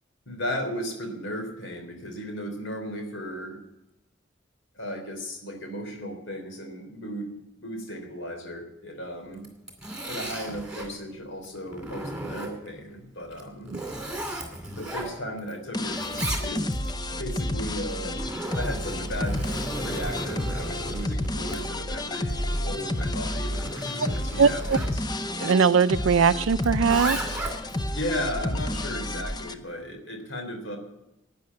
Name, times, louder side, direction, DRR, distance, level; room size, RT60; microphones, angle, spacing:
voice 1, 0.3-3.6 4.8-9.5 10.1-13.7 14.8-16.0 16.4-16.8 17.2-18.2 18.5-19.4 19.8-25.0 27.9-30.8, equal, 80° left, 3.4 m, -35 dB
Zipper (clothing), 9.3-10.9 11.4-12.8 13.3-15.5 15.8-16.9 17.8-24.9 26.6-27.8, right 1 dB, 5° right, 2.4 m, -36 dB
sound 1, 15.7-29.5, left 1 dB, 20° left, 0.7 m, -30 dB
voice 2, 24.4-24.8 25.4-27.2, right 6 dB, 90° right, 0.5 m, -21 dB
11.5 x 9.4 x 9.4 m
head